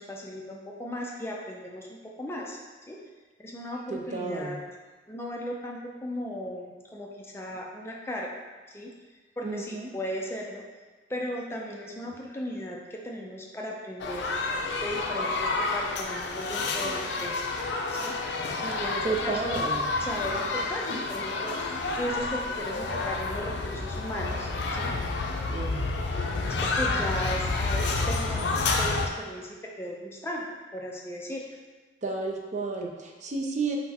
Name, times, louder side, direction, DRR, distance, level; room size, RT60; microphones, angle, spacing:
voice 1, 0.0-2.6 2.9-3.0 3.4-4.6 5.1-8.3 8.7-8.9 9.4-10.7 11.1-14.5 14.8-17.4 17.9-19.6 20.0-24.9 26.5-30.5 30.7-31.4, equal, 15° left, -1 dB, 0.4 m, -36 dB
voice 2, 3.9-4.6 9.4-9.9 19.0-19.8 25.5-25.9 32.0-33.8, right 4 dB, 40° right, 1 dB, 0.5 m, -32 dB
sound 1, 14.0-29.1, left 3 dB, 75° left, 0.4 m, -29 dB
5.7 x 2.1 x 4.2 m, 1.3 s
head